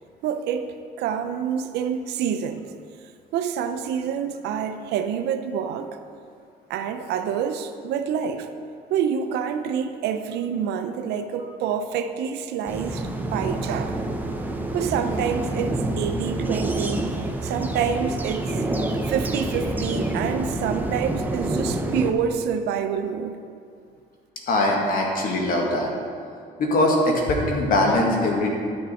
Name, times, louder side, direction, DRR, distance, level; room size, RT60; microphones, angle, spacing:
voice 1, 0.2-0.7 1.0-2.6 3.3-6.0 6.7-8.5 8.9-14.0 14.7-17.1 17.4-18.5 19.1-23.4, right 7 dB, 80° right, 8 dB, 0.7 m, -27 dB
sound 1, 12.7-22.1, right 2 dB, 10° right, 0.8 m, -27 dB
voice 2, 24.5-25.9 26.6-28.5, left 1 dB, 55° left, 0 dB, 1.8 m, -21 dB
11.5 x 6.6 x 4.3 m, 2.3 s
cardioid pair, 110°, 17 cm